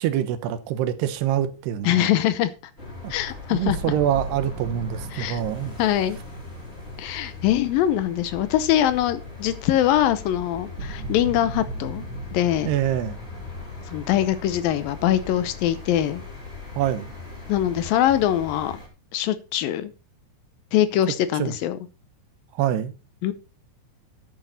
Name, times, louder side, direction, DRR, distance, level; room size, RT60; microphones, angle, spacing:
voice 1, 0.0-2.1 3.0-3.1 3.5-5.7 12.7-13.2 16.8-17.1 21.4-21.6 22.5-22.9, right 11 dB, 90° right, 3.2 m, -25 dB
sound 1, 1.1-2.0 3.7-8.7 9.0-9.2 10.8-14.5, right 3 dB, 50° right, 4.3 m, -38 dB
voice 2, 1.8-2.5 3.1-3.8 5.1-5.4 5.8-6.2 7.0-12.0 12.3-12.7 13.9-16.2 17.5-18.8 19.1-19.9 20.7-21.8 23.2-23.3, left 12 dB, 75° left, 2.3 m, -23 dB
sound 2, 2.8-18.9, left 4 dB, 15° left, 3.8 m, -39 dB
11.0 x 9.1 x 4.1 m
omnidirectional pair, 4.7 m